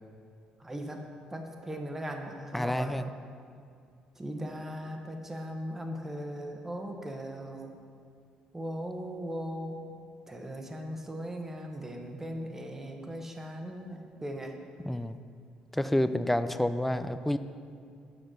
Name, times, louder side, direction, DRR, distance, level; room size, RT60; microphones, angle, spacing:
voice 1, 0.6-1.0 1.3-3.0 4.2-7.7 8.5-9.8 10.3-14.5, equal, 15° right, 3 dB, 1.1 m, -38 dB
voice 2, 2.5-3.1 14.8-15.2 15.7-17.4, left 1 dB, 5° left, 11 dB, 0.4 m, -29 dB
7.8 x 5.8 x 6.7 m, 2.3 s
cardioid pair, 90°, 2 cm